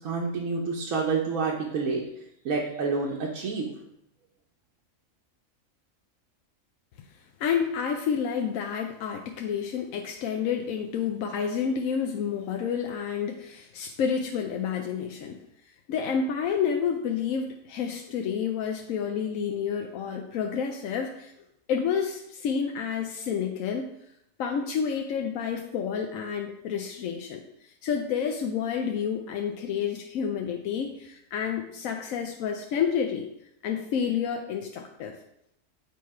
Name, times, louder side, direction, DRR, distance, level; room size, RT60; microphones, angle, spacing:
voice 1, 0.0-2.0 2.4-3.7, right 4 dB, 90° right, -2 dB, 1.3 m, -28 dB
voice 2, 7.4-15.4 15.9-21.3 21.7-23.9 24.4-33.3 33.6-35.2, left 7 dB, 80° left, 3 dB, 1.0 m, -29 dB
8.5 x 2.9 x 4.7 m, 0.77 s
omnidirectional pair, 1.4 m